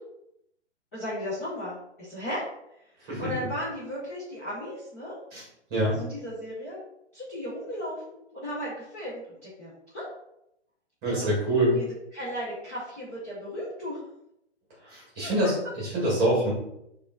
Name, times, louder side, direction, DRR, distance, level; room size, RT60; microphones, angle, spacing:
voice 1, 0.9-2.8 3.2-5.2 5.8-6.8 7.1-10.0 11.1-11.3 11.7-11.9 12.1-14.0 15.2-15.3, equal, 15° left, -10 dB, 0.5 m, -36 dB
voice 2, 11.0-11.8 14.8-16.5, right 1 dB, 25° right, -6 dB, 1.1 m, -25 dB
4.8 x 2.4 x 2.2 m, 0.80 s
figure-of-eight pair, 130°, 35 cm